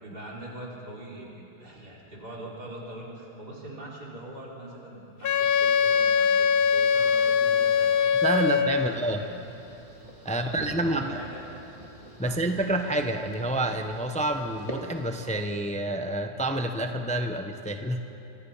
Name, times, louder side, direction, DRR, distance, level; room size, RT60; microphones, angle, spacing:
voice 1, 0.0-9.3 10.2-11.5 12.2-12.4, right 1 dB, 80° right, -4 dB, 5.1 m, -42 dB
Wind instrument woodwind instrument, 5.2-9.0, left 7 dB, 65° left, 0.5 m, -22 dB
voice 2, 8.2-9.2 10.2-11.2 12.2-18.0, right 1 dB, 5° left, 6 dB, 0.8 m, -28 dB
sound 1, 8.7-15.4, right 1 dB, 20° right, 2.3 m, -45 dB
26.0 x 23.5 x 5.7 m, 2.9 s
omnidirectional pair, 1.7 m